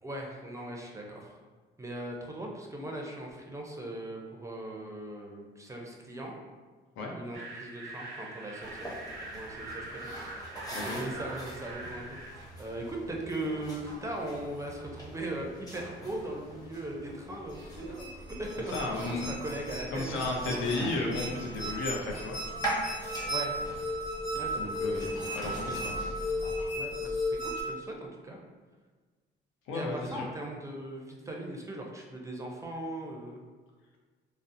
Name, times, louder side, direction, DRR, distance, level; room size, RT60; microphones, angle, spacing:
voice 1, 0.0-1.4 1.8-6.4 7.1-10.4 10.8-20.2 20.5-20.8 23.0-23.5 24.3-24.7 26.7-28.4 29.7-33.4, right 1 dB, 15° right, 0 dB, 0.4 m, -39 dB
sound 1, 7.3-12.3, right 2 dB, 90° right, 0.5 m, -43 dB
sound 2, 8.6-26.7, right 1 dB, 20° left, 0.8 m, -43 dB
sound 3, 17.5-27.6, left 1 dB, 55° left, 1.1 m, -35 dB
voice 2, 18.7-19.3 19.9-22.5 24.6-26.2 29.7-30.3, left 2 dB, 80° left, 0 dB, 0.5 m, -34 dB
2.6 x 2.0 x 2.5 m, 1.4 s
cardioid pair, 90°, 20 cm